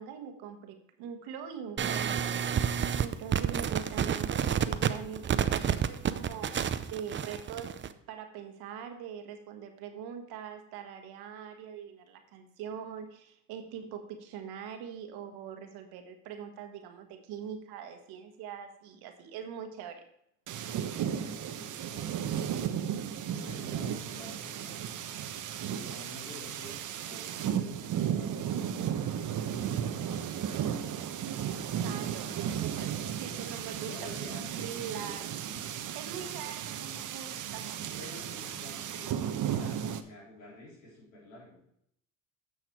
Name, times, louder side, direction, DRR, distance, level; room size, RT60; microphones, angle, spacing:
voice 1, 0.0-2.4 3.0-20.0 31.8-34.1 34.5-35.3 35.9-37.9, right 8 dB, 75° right, 6 dB, 1.4 m, -43 dB
sound 1, 1.8-7.9, right 8 dB, 30° right, 0.6 m, -29 dB
sound 2, 20.5-40.0, right 9 dB, 50° right, 0.9 m, -35 dB
voice 2, 20.9-22.1 23.2-25.2 25.7-31.2 33.8-35.2 38.0-41.6, left 1 dB, 90° left, -5 dB, 3.9 m, -49 dB
9.4 x 6.4 x 4.6 m, 0.73 s
supercardioid pair, 70°, 38 cm